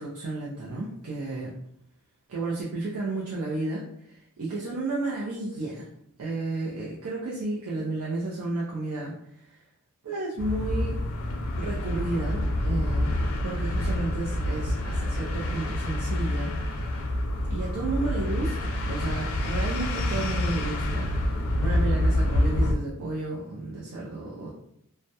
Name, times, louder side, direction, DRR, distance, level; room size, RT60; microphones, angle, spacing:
voice 1, 0.0-1.6 2.3-5.9 6.2-9.6 10.0-11.0 11.6-16.5 17.5-21.1 21.6-24.5, right 2 dB, 80° right, -5 dB, 0.5 m, -32 dB
sound 1, 10.4-22.7, left 1 dB, 65° left, 0.4 m, -27 dB
2.2 x 2.0 x 2.7 m, 0.73 s
head